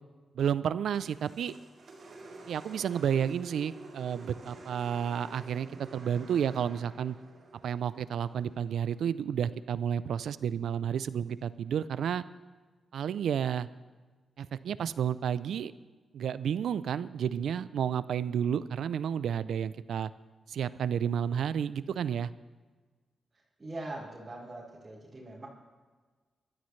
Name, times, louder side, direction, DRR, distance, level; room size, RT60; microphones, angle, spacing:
voice 1, 0.3-1.5 2.5-7.2 7.6-12.2 12.9-13.7 14.4-15.7 16.1-20.1 20.5-22.3, right 8 dB, 80° right, 16 dB, 0.4 m, -31 dB
sound 1, 0.9-9.2, right 2 dB, 65° right, 4.3 m, -50 dB
voice 2, 23.6-25.5, right 2 dB, 30° right, -7 dB, 4.5 m, -42 dB
22.0 x 13.0 x 3.2 m, 1.4 s
cardioid pair, 70°, 0 cm